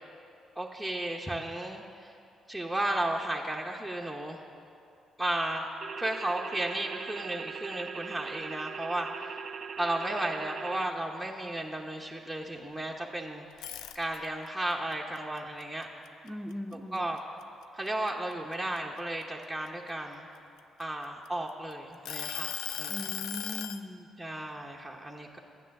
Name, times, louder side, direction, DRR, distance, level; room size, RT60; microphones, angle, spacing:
voice 1, 0.6-2.1 2.5-4.4 5.2-5.7 6.0-9.4 9.8-13.4 13.9-15.9 16.9-17.2 17.7-20.3 20.8-23.0 24.2-25.4, right 1 dB, ahead, -2 dB, 1.0 m, -34 dB
sound 1, 5.8-10.9, right 7 dB, 50° right, 0.3 m, -40 dB
sound 2, 13.5-14.5 14.9-16.7 17.2-17.4 17.9-19.7 20.4-21.5 22.1-23.8, left 10 dB, 90° left, 0.4 m, -37 dB
voice 2, 16.2-17.1 22.9-24.1, left 1 dB, 15° right, 5 dB, 0.7 m, -39 dB
12.0 x 9.5 x 6.6 m, 2.5 s
cardioid pair, 90°, 0 cm